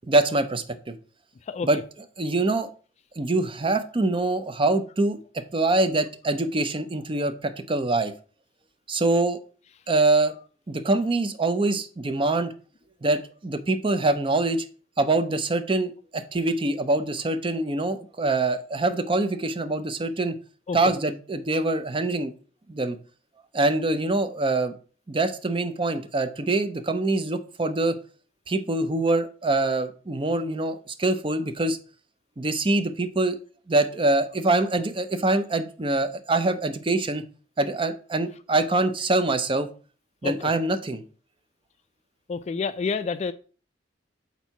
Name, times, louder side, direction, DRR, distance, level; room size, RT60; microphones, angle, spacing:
voice 1, 0.1-0.9 1.6-1.8 2.2-2.7 3.2-8.1 8.9-9.4 9.9-10.3 10.7-12.5 13.0-14.6 15.0-20.4 20.7-22.3 22.7-23.0 23.5-24.7 25.1-28.0 28.5-31.8 32.4-33.4 33.7-37.2 37.6-39.7 40.2-41.0, right 2 dB, 30° right, 9 dB, 0.6 m, -24 dB
voice 2, 42.3-43.3, left 5 dB, 35° left, 12 dB, 0.3 m, -28 dB
4.5 x 4.0 x 5.7 m, 0.39 s
head